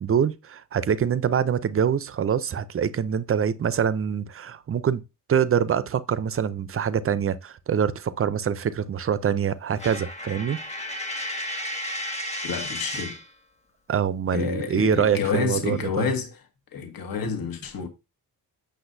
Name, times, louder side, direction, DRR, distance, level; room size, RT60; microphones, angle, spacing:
voice 1, 0.0-5.0 5.3-10.6 13.9-16.1, right 8 dB, 35° right, 0.5 m, -25 dB
Coin (dropping), 9.8-13.3, left 1 dB, 15° left, 1.2 m, -33 dB
voice 2, 12.4-13.2 14.3-16.4 16.7-17.9, left 6 dB, 60° left, 1.4 m, -29 dB
7.9 x 6.5 x 2.6 m
wide cardioid pair, 155°, 39 cm